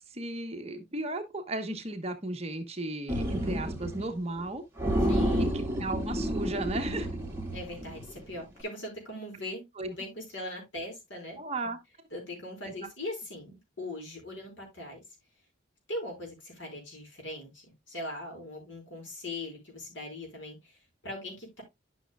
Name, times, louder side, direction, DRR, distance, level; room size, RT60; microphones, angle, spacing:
voice 1, 0.1-4.6 5.4-7.1 9.8-9.9 11.4-11.8, right 2 dB, 30° right, 1.1 m, -35 dB
sound 1, 3.1-4.1 4.4-4.5 4.8-8.2, equal, 10° right, 2.2 m, -30 dB
voice 2, 5.1-5.5 7.5-11.4 12.1-15.0 15.9-21.6, left 1 dB, 75° left, 5.1 m, -40 dB
12.0 x 6.3 x 2.3 m
head